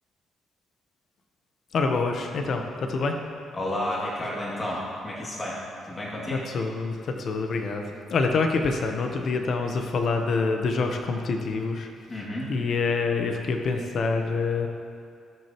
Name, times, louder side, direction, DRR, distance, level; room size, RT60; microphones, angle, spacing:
voice 1, 1.7-3.2 6.3-11.9 12.5-14.7, left 4 dB, 60° left, 4 dB, 0.9 m, -26 dB
voice 2, 3.5-5.6 5.9-6.4 12.1-12.5, left 1 dB, 25° left, -5 dB, 2.3 m, -31 dB
17.5 x 6.4 x 3.0 m, 2.3 s
cardioid pair, 90°, 0 cm